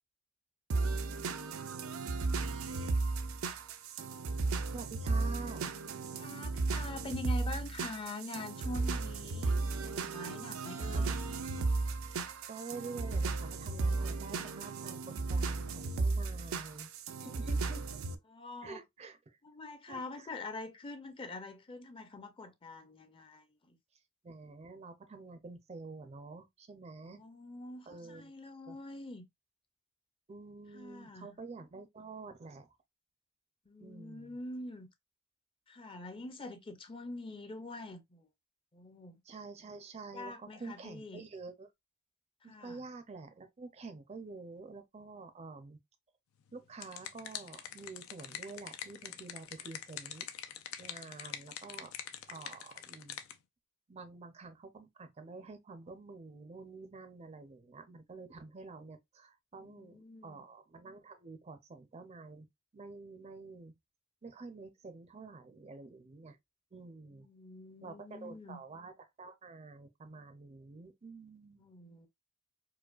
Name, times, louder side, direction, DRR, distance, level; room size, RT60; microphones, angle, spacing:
sound 1, 0.7-18.1, right 3 dB, 90° right, 0.5 m, -35 dB
voice 1, 4.7-5.7 10.9-11.4 12.5-16.9 17.2-18.0 18.6-19.4 19.9-20.3 24.2-27.2 27.9-28.3 28.7-28.8 30.3-32.7 33.8-34.4 39.3-41.7 42.4-45.8 46.5-50.3 50.8-51.9 52.3-53.2 53.9-62.5 62.7-63.7 64.2-66.4 66.7-67.3 67.8-71.6, right 3 dB, 30° right, 0.5 m, -48 dB
voice 2, 6.2-9.6 9.8-11.2 18.3-18.8 19.4-23.8 27.0-29.2 30.7-31.4 33.7-34.9 35.7-38.3 38.7-39.2 40.1-41.2 42.4-42.8 59.6-60.4 67.1-68.6 71.6-72.1, left 2 dB, 25° left, 0.5 m, -45 dB
sound 2, 46.5-53.4, left 9 dB, 90° left, 0.5 m, -45 dB
4.7 x 2.2 x 2.3 m
head